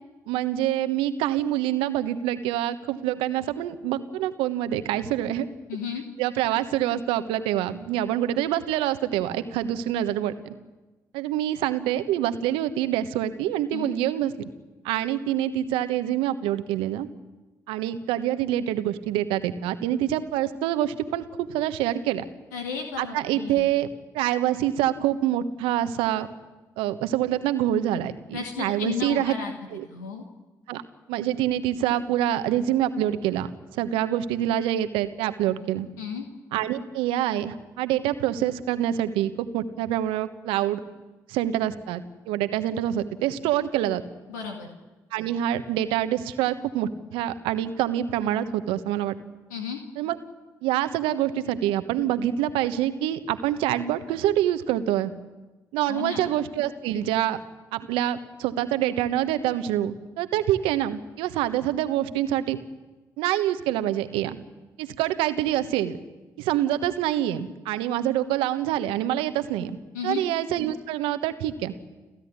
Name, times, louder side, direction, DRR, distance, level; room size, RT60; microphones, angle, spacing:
voice 1, 0.3-5.5 6.2-10.5 11.1-14.5 14.8-17.1 17.7-22.2 23.0-23.9 24.1-26.3 26.8-29.3 29.7-29.8 30.7-30.8 31.1-35.9 36.5-40.8 41.3-44.0 45.1-49.1 50.0-50.2 50.6-55.1 55.7-57.4 57.7-62.6 63.2-64.4 64.8-66.0 66.4-69.7 70.0-71.7, right 12 dB, 80° right, 10 dB, 1.2 m, -26 dB
voice 2, 5.7-6.0 13.7-13.9 22.5-23.7 28.3-29.5 29.9-30.2 36.0-36.2 44.3-44.7 49.5-49.8 55.9-56.3 69.9-70.2, left 6 dB, 90° left, 2 dB, 2.1 m, -33 dB
29.5 x 13.5 x 9.6 m, 1.2 s
hypercardioid pair, 45°, 9 cm